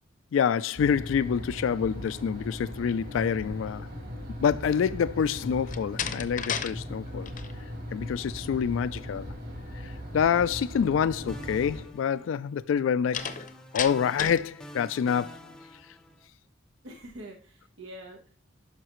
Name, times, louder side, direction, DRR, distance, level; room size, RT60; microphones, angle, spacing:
voice 1, 0.3-3.9 4.4-7.3 7.9-9.3 9.8-13.2 13.7-15.4, left 7 dB, 80° left, 0.3 m, -27 dB
sound 1, 0.8-11.8, equal, 50° right, 3.3 m, -39 dB
Slam, 5.6-6.7 7.1-7.5 13.1-14.5, left 7 dB, 40° left, 0.6 m, -33 dB
sound 2, 11.3-12.7 13.1-16.3, equal, 5° left, 0.6 m, -47 dB
voice 2, 16.8-18.3, right 1 dB, 85° right, 1.1 m, -45 dB
11.0 x 5.8 x 3.0 m
head